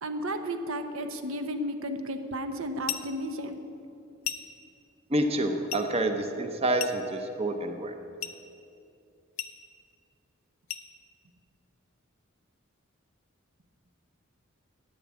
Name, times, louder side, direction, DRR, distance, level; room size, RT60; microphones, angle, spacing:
voice 1, 0.0-3.6, equal, 75° right, 7 dB, 1.0 m, -33 dB
sound 1, 2.9-3.2 4.2-4.6 5.7-5.9 6.8-7.2 8.2-8.5 9.4-9.6 10.7-10.9, left 11 dB, 80° left, 0.7 m, -36 dB
voice 2, 5.1-7.9, right 1 dB, 30° right, 6 dB, 0.8 m, -28 dB
11.0 x 8.4 x 9.5 m, 2.6 s
head